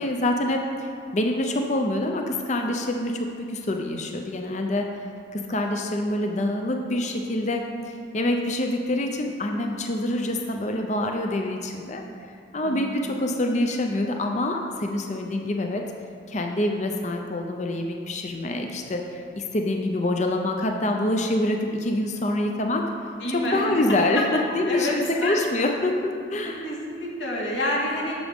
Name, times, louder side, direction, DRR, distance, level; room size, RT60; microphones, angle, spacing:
voice 1, 0.0-4.9 5.3-12.0 12.5-15.8 16.3-22.9 23.3-26.7, left 1 dB, 35° left, 3 dB, 0.6 m, -26 dB
voice 2, 23.2-23.7 24.7-25.0 25.2-25.4 26.4-28.2, left 1 dB, 75° left, -4 dB, 2.0 m, -28 dB
12.0 x 7.5 x 3.6 m, 2.3 s
head